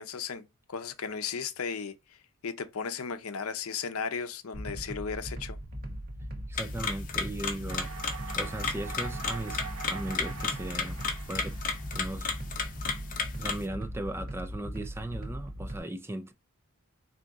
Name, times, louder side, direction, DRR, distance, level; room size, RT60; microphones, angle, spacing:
voice 1, 0.0-1.9 2.4-5.6, left 6 dB, 75° left, 0.6 m, -35 dB
sound 1, 4.5-15.8, equal, 40° right, 0.9 m, -39 dB
voice 2, 6.5-7.9 8.4-11.6 11.9-12.3 13.4-16.3, right 1 dB, 10° right, 0.4 m, -37 dB
sound 2, 6.6-13.7, left 5 dB, 40° left, 0.8 m, -34 dB
sound 3, 7.7-13.7, right 6 dB, 90° right, 0.7 m, -45 dB
4.0 x 2.8 x 3.5 m
head